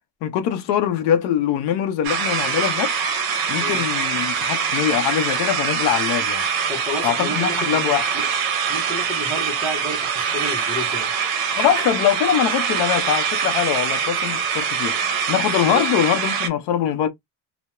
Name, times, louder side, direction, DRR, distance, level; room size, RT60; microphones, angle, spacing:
voice 1, 0.2-2.9 3.5-6.5 7.0-8.1 11.5-15.0 15.3-17.1, left 10 dB, 85° left, 0.6 m, -22 dB
sound 1, 2.0-16.5, right 6 dB, 60° right, 0.7 m, -23 dB
voice 2, 6.7-7.8 8.7-11.1 15.7-15.9, left 1 dB, 5° right, 0.5 m, -31 dB
2.3 x 2.1 x 2.8 m
cardioid pair, 170°, 41 cm